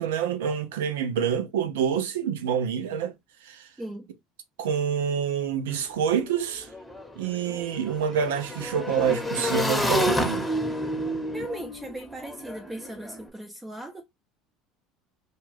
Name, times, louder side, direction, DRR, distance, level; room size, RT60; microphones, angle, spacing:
voice 1, 0.0-3.1 3.4-3.6 4.6-6.7 7.2-10.5, right 7 dB, 80° right, 0.5 m, -27 dB
voice 2, 3.8-4.1 11.3-14.0, right 1 dB, 15° right, 0.6 m, -38 dB
Motorcycle / Engine, 5.7-5.8 6.0-13.2, equal, 10° left, 0.9 m, -30 dB
2.3 x 2.3 x 3.2 m
hypercardioid pair, 70°, 0 cm